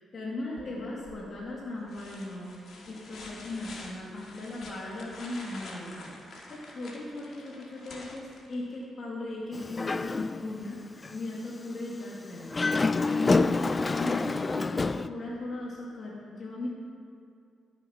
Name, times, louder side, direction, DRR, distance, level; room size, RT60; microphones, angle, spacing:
voice 1, 0.1-6.1 6.5-10.8 11.1-16.7, left 2 dB, 45° left, -5 dB, 2.3 m, -37 dB
Musical instrument, 0.6-10.1, left 2 dB, 80° left, 1.3 m, -56 dB
sound 1, 1.0-1.4 1.9-8.8 10.6-10.7, left 2 dB, 60° left, 2.0 m, -47 dB
Dog, 9.5-10.6 11.0-11.2 12.4-15.1, left 3 dB, 25° left, 0.3 m, -27 dB
12.5 x 7.4 x 5.8 m, 2.4 s
cardioid pair, 95°, 0 cm